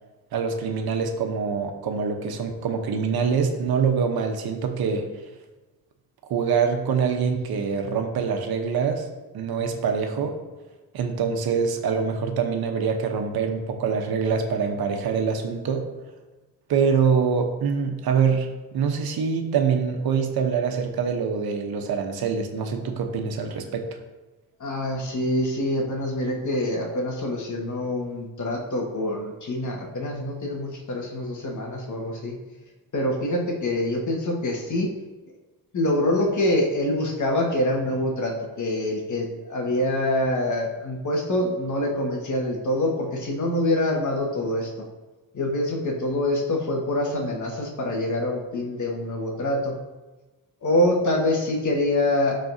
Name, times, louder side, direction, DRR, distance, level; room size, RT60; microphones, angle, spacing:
voice 1, 0.3-5.1 6.3-9.1 9.3-10.4 10.9-15.9 16.7-24.0, right 6 dB, 85° right, 4 dB, 1.0 m, -25 dB
voice 2, 24.6-32.4 32.9-34.9 35.7-44.9 45.3-49.8 50.6-52.4, left 1 dB, 55° left, 0 dB, 1.7 m, -25 dB
12.5 x 4.2 x 2.7 m, 1.2 s
cardioid pair, 95°, 36 cm